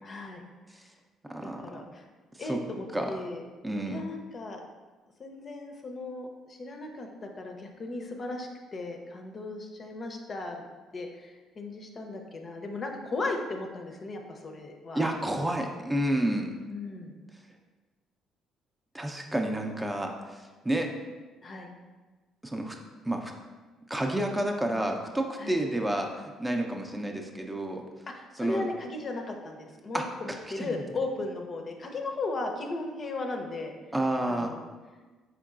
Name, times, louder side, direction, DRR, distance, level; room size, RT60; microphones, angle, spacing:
voice 1, 0.0-0.4 1.4-2.1 2.4-3.4 3.9-4.6 5.2-10.6 10.9-15.0 16.7-17.2 21.4-21.7 25.4-25.6 28.1-33.7 34.3-34.7, left 2 dB, 45° left, 3 dB, 0.5 m, -36 dB
voice 2, 1.3-1.8 2.3-2.6 2.9-3.2 3.6-4.0 14.9-16.5 18.9-20.9 22.4-22.8 23.0-23.3 23.9-27.8 28.4-28.7 29.9-30.8 33.9-34.5, right 1 dB, 15° right, 3 dB, 0.5 m, -30 dB
4.4 x 3.6 x 2.4 m, 1.3 s
hypercardioid pair, 50°, 0 cm